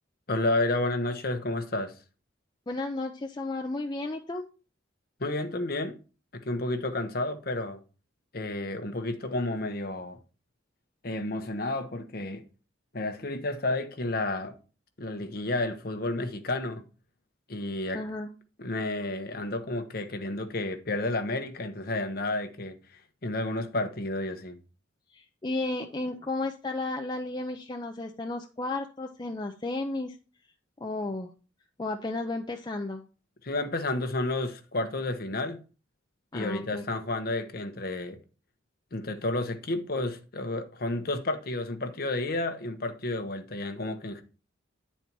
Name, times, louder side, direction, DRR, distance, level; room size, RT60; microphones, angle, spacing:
voice 1, 0.3-1.9 5.2-6.0 6.3-7.8 8.3-10.2 11.0-12.4 12.9-14.5 15.0-16.8 17.5-18.0 18.6-24.6 33.4-35.6 36.3-38.2 38.9-44.2, left 2 dB, 50° left, 0.9 m, -31 dB
voice 2, 2.7-4.4 17.9-18.3 25.1-30.2 30.8-31.3 31.8-33.0 36.3-36.8, left 2 dB, 20° left, 0.4 m, -33 dB
9.4 x 4.2 x 4.5 m
head